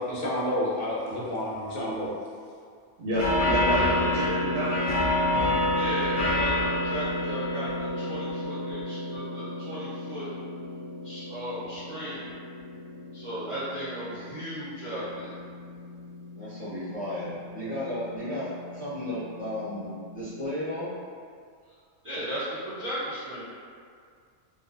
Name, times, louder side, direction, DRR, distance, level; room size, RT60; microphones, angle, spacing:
voice 1, 0.0-2.1, left 1 dB, 60° left, -6 dB, 0.7 m, -29 dB
voice 2, 3.0-5.0, right 1 dB, 85° right, -8 dB, 1.0 m, -29 dB
sound 1, 3.1-20.4, left 1 dB, 80° left, 0.3 m, -31 dB
voice 3, 5.7-10.3 11.0-12.2 13.1-15.3 22.0-23.4, equal, 50° right, -12 dB, 0.3 m, -35 dB
voice 4, 16.4-20.9, left 1 dB, 10° left, -12 dB, 0.4 m, -34 dB
2.3 x 2.3 x 2.4 m, 2.1 s
omnidirectional pair, 1.3 m